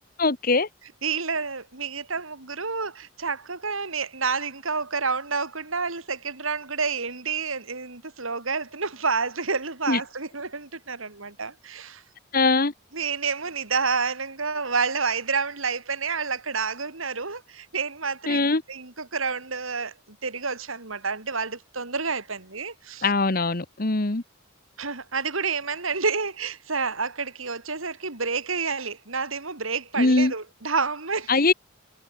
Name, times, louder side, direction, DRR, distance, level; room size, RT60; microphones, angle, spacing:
voice 1, 0.2-0.7 9.9-10.0 12.3-12.7 18.3-18.6 23.0-24.2 30.0-30.3 31.3-31.5, left 3 dB, 45° left, 1.3 m, -21 dB
voice 2, 1.0-12.0 12.9-18.4 18.7-23.1 24.8-31.5, right 5 dB, 80° right, 3.7 m, -29 dB
head